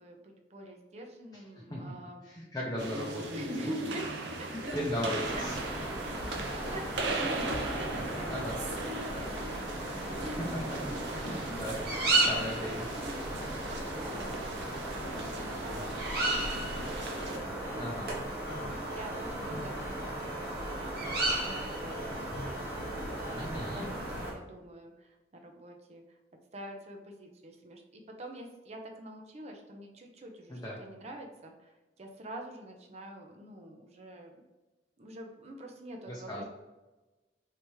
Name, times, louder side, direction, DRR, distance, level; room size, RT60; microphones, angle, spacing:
voice 1, 0.0-2.3 3.3-4.1 4.4-4.7 5.3-5.5 5.8-11.4 12.2-12.4 12.9-18.4 18.6-22.6 23.2-25.2 25.4-26.0 26.5-34.3 35.0-36.4, right 1 dB, 40° right, 3 dB, 0.5 m, -46 dB
voice 2, 2.2-3.4 4.5-5.6 8.3-8.6 10.5-10.6 11.1-11.8 12.2-12.9 17.8-18.1 23.3-23.9 30.5-30.8 36.1-36.4, equal, 20° left, -5 dB, 0.6 m, -37 dB
sound 1, 2.8-17.4, right 2 dB, 90° right, 0.6 m, -38 dB
sound 2, 5.2-24.3, right 2 dB, 60° right, 0.9 m, -35 dB
Ringtone, 16.8-23.6, equal, 65° left, 0.7 m, -48 dB
3.4 x 2.8 x 3.0 m, 1.1 s
head